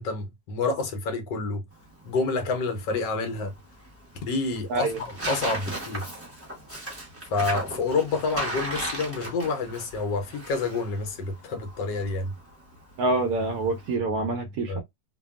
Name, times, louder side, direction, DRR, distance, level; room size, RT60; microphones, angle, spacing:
voice 1, 0.0-1.7 2.0-3.6 4.3-6.1 7.3-12.3 14.7-14.8, left 3 dB, 70° left, 1.3 m, -28 dB
Tearing, 1.7-13.9, right 1 dB, 20° right, 0.4 m, -37 dB
voice 2, 13.0-14.8, right 2 dB, 70° right, 1.1 m, -26 dB
3.3 x 2.2 x 2.2 m
omnidirectional pair, 2.0 m